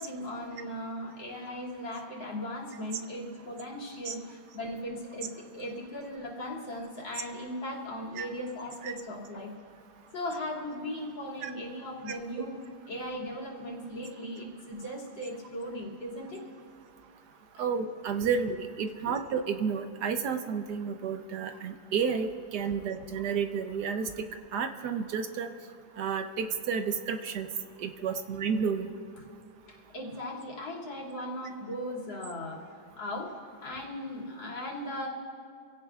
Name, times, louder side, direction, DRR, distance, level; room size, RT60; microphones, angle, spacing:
voice 1, 0.0-9.5 10.1-12.6 12.9-16.4 18.2-18.3 28.0-28.2 29.7-32.6 33.0-33.3 33.6-35.1, left 1 dB, 85° left, -4 dB, 3.2 m, -38 dB
voice 2, 17.6-24.1 24.5-25.5 26.0-27.5 27.8-28.9, right 6 dB, 65° right, 8 dB, 1.2 m, -31 dB
27.5 x 17.0 x 2.4 m, 2.3 s
omnidirectional pair, 2.0 m